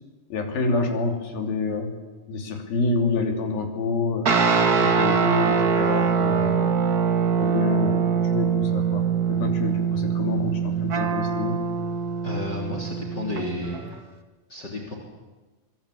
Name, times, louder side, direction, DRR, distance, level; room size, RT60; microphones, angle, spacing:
voice 1, 0.3-1.9 2.3-4.3 4.8-6.8 7.4-11.6, left 3 dB, 80° left, 3 dB, 4.9 m, -27 dB
sound 1, 4.3-14.0, right 6 dB, 45° right, 1.3 m, -23 dB
voice 2, 12.2-14.0 14.5-15.0, left 2 dB, 30° left, 2 dB, 3.6 m, -32 dB
25.0 x 22.5 x 8.6 m, 1.2 s
omnidirectional pair, 4.2 m